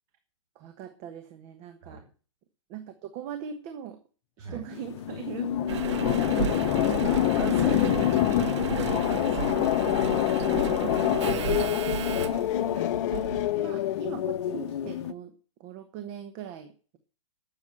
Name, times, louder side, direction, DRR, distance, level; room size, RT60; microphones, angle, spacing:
voice 1, 0.5-2.0 2.7-4.0 4.4-6.9 10.4-15.3 15.6-17.0, right 9 dB, 35° right, 8 dB, 1.3 m, -41 dB
sound 1, 4.7-15.1, left 11 dB, 55° left, 1.0 m, -30 dB
sound 2, 4.9-13.4, left 15 dB, 30° left, 0.7 m, -27 dB
Engine, 5.7-13.5 14.2-14.3, right 9 dB, 55° right, 1.1 m, -33 dB
voice 2, 7.0-9.6 12.1-12.3, right 3 dB, 15° right, 2 dB, 4.7 m, -38 dB
12.0 x 7.2 x 7.7 m, 0.39 s
hypercardioid pair, 140°, 17 cm